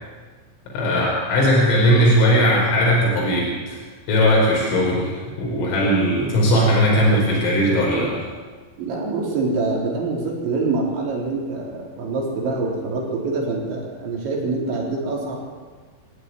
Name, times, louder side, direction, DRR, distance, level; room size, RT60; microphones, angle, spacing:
voice 1, 0.7-3.8 4.1-8.1, equal, 85° left, -3 dB, 7.8 m, -18 dB
voice 2, 8.8-15.4, right 3 dB, 65° right, -1 dB, 6.0 m, -25 dB
27.0 x 16.0 x 9.8 m, 1.5 s
omnidirectional pair, 5.7 m